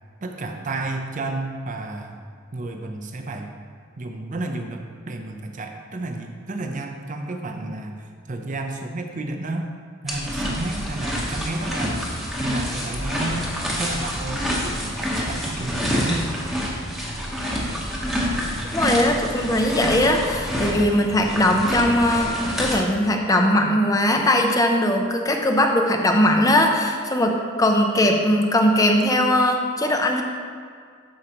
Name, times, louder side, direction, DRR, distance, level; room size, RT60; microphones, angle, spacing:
voice 1, 0.2-2.2 2.5-3.5 4.0-9.7 10.0-12.1 12.4-13.5 13.8-16.3, right 2 dB, 35° right, 4 dB, 0.5 m, -31 dB
sound 1, 10.1-22.8, equal, ahead, 1.0 m, -27 dB
voice 2, 18.7-30.2, left 1 dB, 15° left, 3 dB, 0.5 m, -20 dB
12.0 x 4.8 x 2.9 m, 2.1 s
head